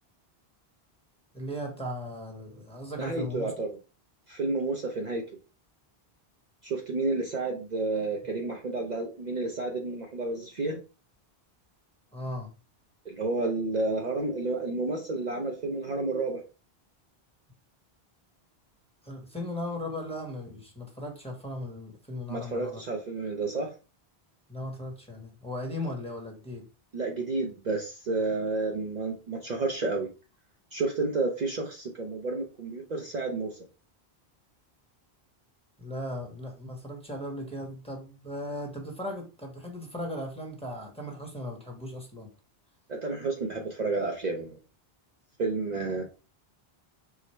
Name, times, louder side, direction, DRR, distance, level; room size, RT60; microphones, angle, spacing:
voice 1, 1.3-3.5 12.1-12.5 19.0-22.8 24.5-26.7 35.8-42.3, left 1 dB, 5° left, 0 dB, 1.1 m, -37 dB
voice 2, 3.0-3.7 4.3-5.2 6.6-10.8 13.1-16.4 22.3-23.7 25.8-25.9 26.9-30.1 30.7-33.6 42.9-44.6 45.4-46.0, right 3 dB, 50° right, 0 dB, 0.7 m, -30 dB
4.7 x 2.1 x 4.2 m, 0.33 s
omnidirectional pair, 1.0 m